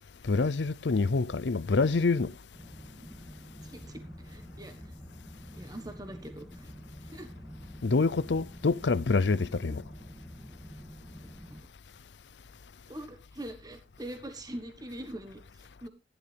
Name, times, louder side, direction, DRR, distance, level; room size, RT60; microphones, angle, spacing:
voice 1, 0.3-2.3 7.8-9.8, left 4 dB, 80° left, 0.6 m, -26 dB
sound 1, 2.5-11.6, equal, ahead, 2.2 m, -47 dB
voice 2, 3.6-4.9 5.5-6.7 7.0-7.3 9.6-9.7 12.9-15.9, right 1 dB, 20° right, 1.4 m, -43 dB
13.5 x 11.5 x 3.4 m
head